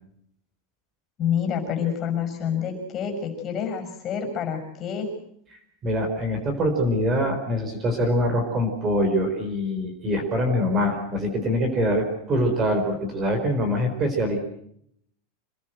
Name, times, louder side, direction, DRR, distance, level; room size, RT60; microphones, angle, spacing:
voice 1, 1.2-5.1, left 7 dB, 25° left, 5 dB, 6.4 m, -28 dB
voice 2, 5.8-14.4, equal, 20° right, 6 dB, 4.3 m, -24 dB
27.5 x 20.0 x 7.8 m, 0.69 s
supercardioid pair, 175°, 0 cm